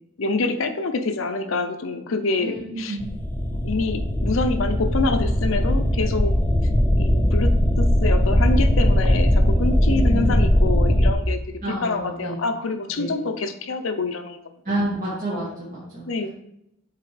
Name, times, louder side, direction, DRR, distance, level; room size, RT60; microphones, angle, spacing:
voice 1, 0.2-3.0 3.6-6.3 6.9-7.5 7.8-11.4 11.8-14.4 16.1-16.3, left 3 dB, 70° left, 7 dB, 0.6 m, -26 dB
voice 2, 2.4-3.1 9.8-10.4 11.6-12.4 12.9-13.1 14.6-16.3, right 1 dB, 40° right, -9 dB, 1.7 m, -29 dB
sound 1, 3.0-11.1, equal, 10° left, 0.4 m, -19 dB
7.4 x 4.3 x 3.3 m, 0.80 s
head